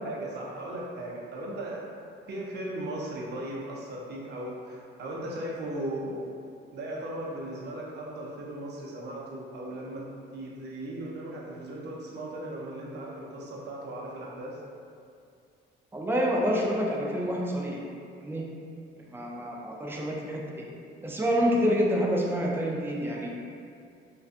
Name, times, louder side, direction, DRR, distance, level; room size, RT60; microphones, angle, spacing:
voice 1, 0.0-1.8 2.3-6.3 6.7-10.0 10.3-14.6, right 1 dB, 60° right, -3 dB, 0.6 m, -37 dB
voice 2, 15.9-17.8 18.2-18.4 19.1-20.4 21.0-23.3, equal, 10° right, -3 dB, 0.4 m, -27 dB
2.5 x 2.2 x 2.4 m, 2.4 s
cardioid pair, 90°, 20 cm